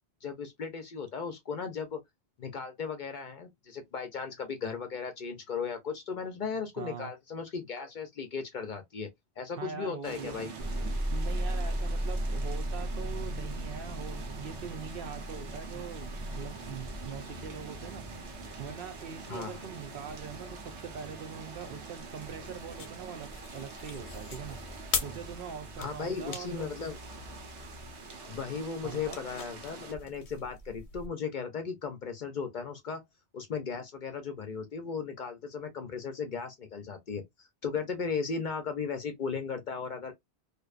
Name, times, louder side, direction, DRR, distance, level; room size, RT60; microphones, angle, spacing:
voice 1, 0.2-2.0 2.4-9.1 9.4-10.5 19.3-19.7 25.8-27.0 28.3-33.0 33.3-40.1, left 5 dB, 55° left, 0.6 m, -36 dB
voice 2, 6.8-7.1 9.6-10.4 11.1-18.0 18.6-24.6 25.0-26.7 28.8-29.2, right 7 dB, 65° right, 0.7 m, -42 dB
sound 1, 10.0-29.9, right 4 dB, 90° right, 1.1 m, -45 dB
sound 2, 10.6-28.2, right 1 dB, 15° left, 0.5 m, -39 dB
sound 3, 22.3-31.1, left 6 dB, 90° left, 1.0 m, -42 dB
2.6 x 2.2 x 2.3 m
omnidirectional pair, 1.1 m